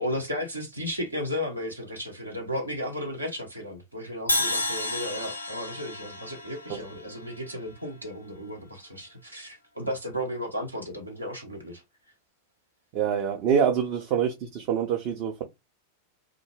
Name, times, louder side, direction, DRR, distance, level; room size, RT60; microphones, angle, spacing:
voice 1, 0.0-11.8, equal, 85° right, 0.8 m, -34 dB
Crash cymbal, 4.3-8.3, left 1 dB, 85° left, 0.5 m, -32 dB
voice 2, 12.9-15.4, right 8 dB, 40° right, 0.5 m, -25 dB
2.4 x 2.1 x 3.1 m
figure-of-eight pair, 90°, 0 cm